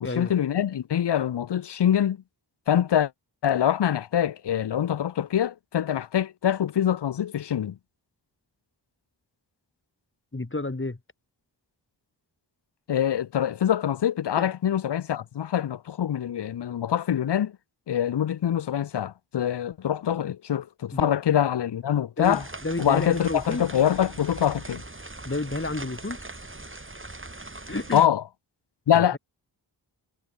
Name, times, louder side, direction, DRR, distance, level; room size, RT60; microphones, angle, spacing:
voice 1, 0.0-2.2 2.7-3.1 3.4-7.8 12.9-17.5 17.9-22.4 22.8-24.8 27.9-28.2 28.9-29.2, left 10 dB, 65° left, 0.7 m, -24 dB
voice 2, 10.3-11.0 14.4-14.5 20.9-21.1 22.2-23.7 25.3-26.2 27.7-28.1 28.9-29.2, left 2 dB, 25° left, 4.1 m, -30 dB
sound 1, 22.2-28.1, right 2 dB, 25° right, 7.5 m, -41 dB
wide cardioid pair, 70°, 44 cm